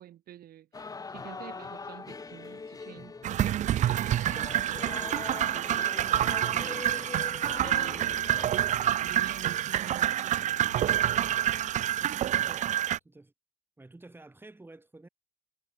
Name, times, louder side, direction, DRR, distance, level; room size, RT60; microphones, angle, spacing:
voice 1, 0.0-7.2 7.6-8.4 9.0-10.5 12.0-12.3, right 12 dB, 65° right, 4.0 m, -49 dB
sound 1, 0.7-8.5, left 4 dB, 20° left, 1.2 m, -42 dB
sound 2, 3.2-13.0, right 11 dB, 45° right, 0.4 m, -27 dB
sound 3, 7.4-12.9, left 11 dB, 60° left, 6.4 m, -54 dB
voice 2, 13.8-15.1, right 2 dB, 10° right, 6.1 m, -50 dB
cardioid pair, 110°, 17 cm